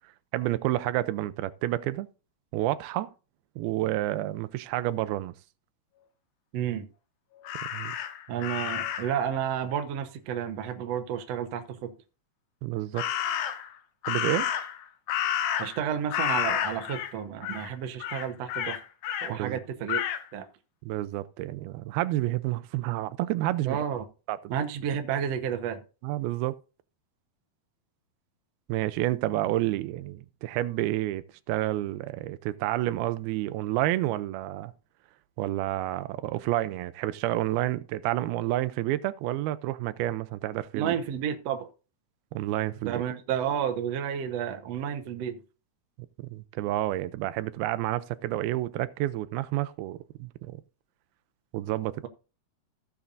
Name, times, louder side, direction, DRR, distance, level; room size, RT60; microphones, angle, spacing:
voice 1, 0.3-2.1 2.5-3.1 3.6-5.3 7.7-7.9 12.6-13.1 14.1-14.5 19.3-19.6 20.8-23.8 24.3-24.4 26.0-26.6 28.7-34.7 35.4-41.0 42.3-43.0 46.2-50.6 51.5-52.1, right 15 dB, 85° right, 2.5 m, -29 dB
voice 2, 6.5-6.9 8.3-11.9 15.6-18.8 19.2-20.0 20.3-20.5 23.6-24.0 24.5-25.8 40.7-41.7 42.8-45.4, right 9 dB, 70° right, 1.6 m, -31 dB
Crow, 7.5-9.2 13.0-13.7 14.1-15.9 16.1-17.1 17.4-17.7 18.0-19.3 19.9-20.2, left 10 dB, 80° left, 2.7 m, -30 dB
16.0 x 6.9 x 2.6 m
omnidirectional pair, 4.3 m